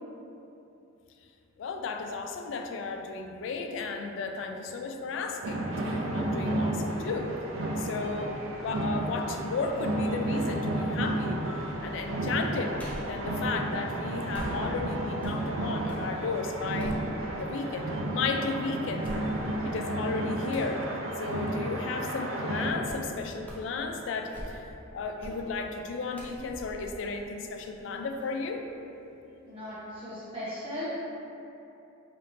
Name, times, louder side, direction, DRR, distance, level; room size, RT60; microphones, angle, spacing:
voice 1, 1.6-7.3 7.8-11.4 11.8-12.7 13.1-17.0 17.4-19.0 19.6-20.8 21.2-24.6 24.9-28.6, left 4 dB, 70° left, 4 dB, 0.3 m, -34 dB
sound 1, 5.4-22.7, right 1 dB, 90° right, 0.5 m, -32 dB
sound 2, 12.8-13.2 14.3-16.1 16.5-17.6 18.1-18.2 19.0-19.7 20.5-20.8 22.8-23.1 23.4-23.8 24.2-24.8 25.2-25.5 26.1-27.8 28.2-28.3, equal, 5° left, 0.5 m, -43 dB
voice 2, 29.5-30.9, left 1 dB, 25° right, -12 dB, 0.7 m, -38 dB
5.0 x 2.9 x 2.5 m, 2.9 s
head